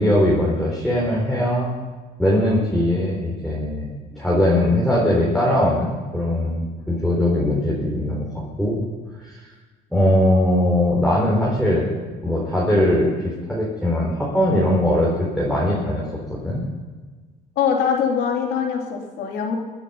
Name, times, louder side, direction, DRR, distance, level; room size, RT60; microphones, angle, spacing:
voice 1, 0.0-1.7 2.2-8.8 9.2-9.4 9.9-11.9 12.2-16.6, left 1 dB, ahead, -5 dB, 4.1 m, -20 dB
voice 2, 17.6-19.6, left 7 dB, 80° left, 1 dB, 3.3 m, -23 dB
23.5 x 9.3 x 5.6 m, 1.4 s
cardioid pair, 110°, 17 cm